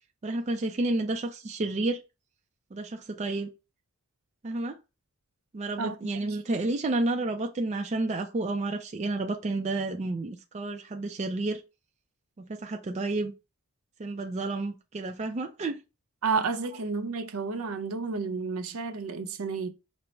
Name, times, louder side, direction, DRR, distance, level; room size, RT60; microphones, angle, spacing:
voice 1, 0.2-2.0 2.7-3.5 4.4-4.8 5.5-11.6 12.4-13.3 14.0-15.8, right 2 dB, 30° right, 0.4 m, -30 dB
voice 2, 16.2-19.7, right 4 dB, 70° right, 0.6 m, -31 dB
5.2 x 2.0 x 4.3 m
head